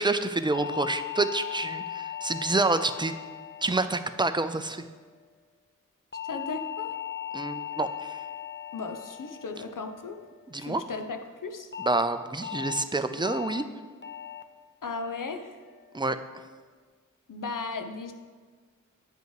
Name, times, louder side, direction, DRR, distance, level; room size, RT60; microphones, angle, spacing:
voice 1, 0.0-3.1 3.6-4.8 7.3-8.2 10.5-10.8 11.8-13.6 15.9-16.2, right 2 dB, 15° right, 10 dB, 0.5 m, -28 dB
sound 1, 0.5-5.0 6.1-10.6 11.7-12.0 12.4-12.8 13.2-13.6 14.0-14.4 14.8-15.2 15.6-16.0, left 10 dB, 35° left, 0.6 m, -39 dB
voice 2, 6.2-6.9 8.7-10.2 10.6-11.7 14.8-15.6 17.3-18.1, left 4 dB, 80° left, 6 dB, 0.7 m, -36 dB
9.1 x 5.5 x 4.7 m, 1.5 s
wide cardioid pair, 45°, 32 cm